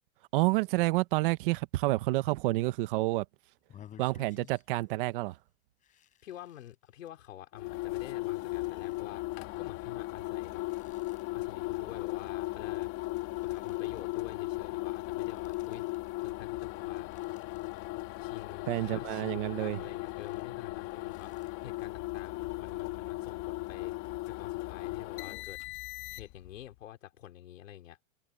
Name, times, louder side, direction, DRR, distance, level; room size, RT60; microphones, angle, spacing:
voice 1, 0.3-3.2 4.0-5.4 18.7-19.8, right 20 dB, 45° right, 1.1 m, -29 dB
sound 1, 3.6-4.9 5.2-5.4 5.8-7.3 7.9-12.7 12.9-14.2 15.0-16.2 16.6-17.8 18.2-18.9 19.3-21.5, left 10 dB, 20° left, 4.6 m, -59 dB
voice 2, 6.2-9.2 9.6-10.6 11.3-12.9 13.4-15.9 16.2-17.1 18.2-23.9 24.3-25.6 26.1-28.0, left 12 dB, 85° left, 4.8 m, -48 dB
sound 2, 7.5-26.5, left 21 dB, 35° left, 2.4 m, -37 dB
supercardioid pair, 160°, 38 cm